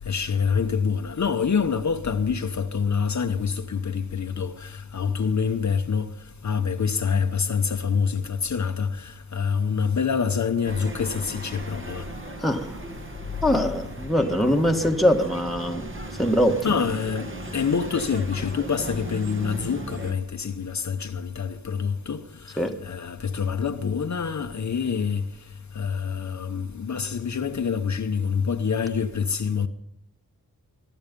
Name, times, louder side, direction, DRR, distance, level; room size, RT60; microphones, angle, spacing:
voice 1, 0.1-6.1 6.4-12.1 16.6-22.2 22.5-25.2 25.7-29.7, left 6 dB, 50° left, 1.0 m, -26 dB
sound 1, 10.6-20.1, right 1 dB, 35° right, 1.7 m, -37 dB
voice 2, 12.4-12.8 13.4-15.9 16.2-16.8 22.6-22.8, equal, ahead, 1.5 m, -22 dB
22.5 x 11.5 x 5.3 m
wide cardioid pair, 90°, 36 cm